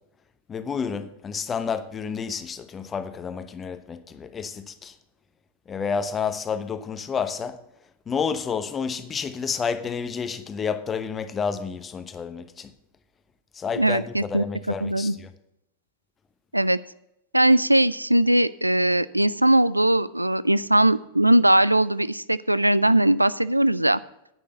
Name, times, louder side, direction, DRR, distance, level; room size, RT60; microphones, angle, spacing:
voice 1, 0.5-4.9 5.7-7.6 8.1-12.7 13.5-15.3, left 6 dB, 20° left, 1.0 m, -30 dB
voice 2, 13.8-14.4 14.8-15.1 16.5-16.8 17.3-24.0, right 1 dB, 85° right, 0.3 m, -20 dB
10.0 x 9.1 x 5.5 m
figure-of-eight pair, 90°, 0 cm